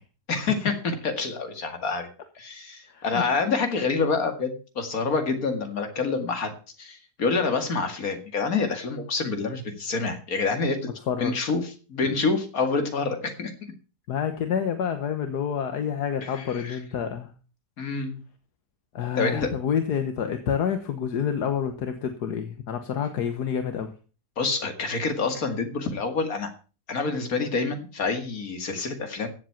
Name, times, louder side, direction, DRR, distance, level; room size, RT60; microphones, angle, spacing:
voice 1, 0.3-2.1 2.4-6.5 6.8-10.8 11.2-11.6 11.9-13.5 16.2-16.8 17.8-18.2 19.2-19.5 24.4-26.5 26.9-29.3, left 4 dB, 60° left, 6 dB, 2.5 m, -27 dB
voice 2, 2.9-3.2 11.1-11.3 14.1-17.3 18.9-23.9, left 7 dB, 75° left, 8 dB, 1.7 m, -28 dB
15.0 x 7.7 x 5.8 m, 0.36 s
omnidirectional pair, 1.7 m